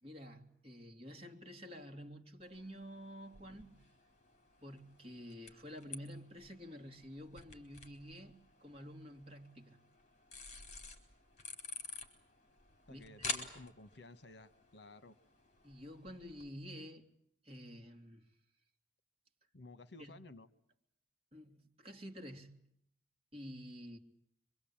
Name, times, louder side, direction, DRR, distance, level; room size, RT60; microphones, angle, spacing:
voice 1, 0.0-3.9 4.6-8.3 8.6-9.8 12.9-13.3 15.6-17.1 17.4-18.2 20.0-20.2 21.3-22.7 23.3-24.0, equal, 35° right, 3.1 m, -50 dB
sound 1, 2.4-16.5, left 4 dB, 40° left, 4.4 m, -50 dB
voice 2, 12.9-15.2 19.5-20.5, left 2 dB, 65° left, 1.3 m, -54 dB
26.0 x 24.5 x 8.8 m
head